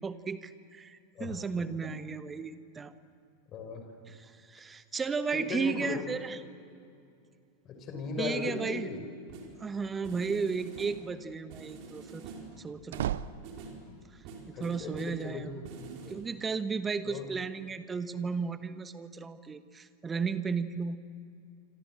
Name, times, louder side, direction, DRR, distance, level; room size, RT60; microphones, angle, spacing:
voice 1, 0.0-2.9 4.1-6.4 8.2-8.9 9.6-12.2 12.6-13.2 14.5-15.5 16.1-21.0, right 5 dB, 15° right, 12 dB, 1.2 m, -34 dB
voice 2, 3.5-3.8 5.3-6.0 7.6-9.0 14.5-15.4 15.8-16.1 17.1-17.3, left 4 dB, 35° left, 5 dB, 6.0 m, -37 dB
sound 1, 9.3-9.6 10.0-11.1 11.5-12.6 12.9-13.9 14.2-15.3 15.6-16.1, right 4 dB, 45° right, 4.8 m, -46 dB
sound 2, 9.7-10.3 12.5-14.0, right 11 dB, 60° right, 0.7 m, -37 dB
27.0 x 26.5 x 7.8 m, 2.4 s
figure-of-eight pair, 90°, 0 cm